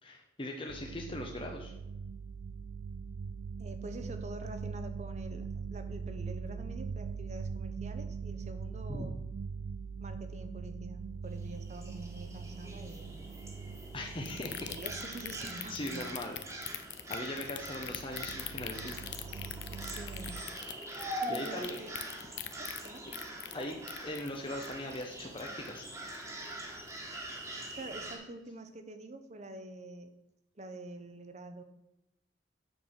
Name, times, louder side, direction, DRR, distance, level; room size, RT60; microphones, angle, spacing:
voice 1, 0.0-1.7 8.9-9.1 13.9-14.7 15.7-16.4 16.8-18.9 21.3-21.8 23.5-25.9, left 1 dB, 30° left, 1 dB, 0.8 m, -40 dB
sound 1, 0.7-16.6 17.3-20.4, right 5 dB, 65° right, 0.3 m, -42 dB
voice 2, 3.6-9.2 10.0-13.2 14.5-16.0 19.7-20.4 21.2-22.0 22.6-23.0 27.7-30.1 30.6-31.6, right 1 dB, 35° right, 8 dB, 0.8 m, -46 dB
sound 2, 11.3-28.2, right 1 dB, 15° right, 1.6 m, -44 dB
sound 3, 14.3-25.9 26.1-26.5 26.9-27.0, left 11 dB, 70° left, 0.6 m, -42 dB
9.0 x 4.6 x 6.5 m, 0.93 s
head